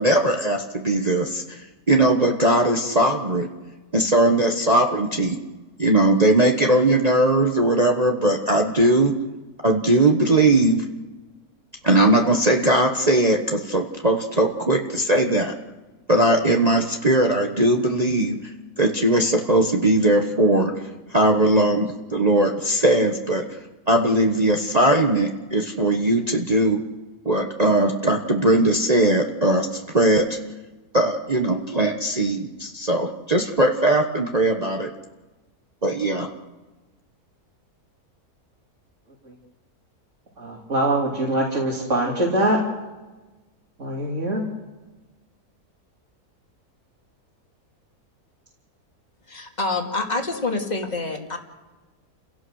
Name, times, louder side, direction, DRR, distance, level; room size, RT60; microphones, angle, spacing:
voice 1, 0.0-3.5 3.9-5.4 5.8-9.1 9.6-10.8 11.8-15.5 16.1-18.4 18.8-20.8 21.1-23.4 23.9-26.8 27.2-30.4 30.9-34.9 35.8-36.3, right 1 dB, 25° right, 2 dB, 1.3 m, -19 dB
voice 2, 40.4-42.6 43.8-44.4, right 1 dB, 50° right, -3 dB, 3.5 m, -23 dB
voice 3, 49.3-51.4, left 3 dB, 25° left, 2 dB, 2.6 m, -27 dB
30.0 x 17.0 x 6.5 m, 1.2 s
omnidirectional pair, 1.6 m